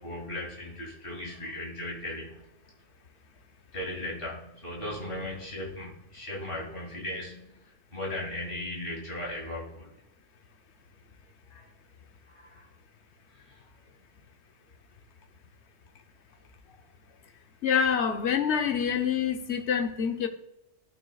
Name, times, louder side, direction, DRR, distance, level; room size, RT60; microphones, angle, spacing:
voice 1, 0.0-2.3 3.7-7.6 7.9-9.9 11.5-11.7 12.3-12.6, left 1 dB, 50° left, -4 dB, 3.0 m, -37 dB
voice 2, 17.6-20.3, left 7 dB, 70° left, 7 dB, 1.1 m, -26 dB
14.0 x 6.2 x 2.3 m, 0.88 s
omnidirectional pair, 1.2 m